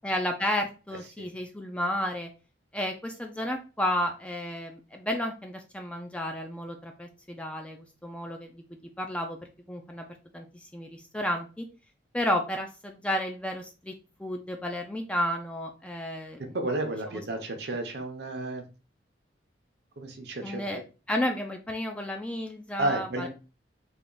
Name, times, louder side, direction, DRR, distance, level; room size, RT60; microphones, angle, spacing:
voice 1, 0.0-2.3 2.7-8.6 9.0-9.4 9.7-10.1 10.3-11.7 12.1-13.9 14.2-16.6 20.4-20.8 21.1-23.3, left 1 dB, 5° left, 3 dB, 0.3 m, -32 dB
voice 2, 16.5-18.6 20.0-20.8 22.8-23.3, right 2 dB, 60° right, 5 dB, 0.7 m, -32 dB
3.4 x 2.3 x 3.8 m, 0.33 s
head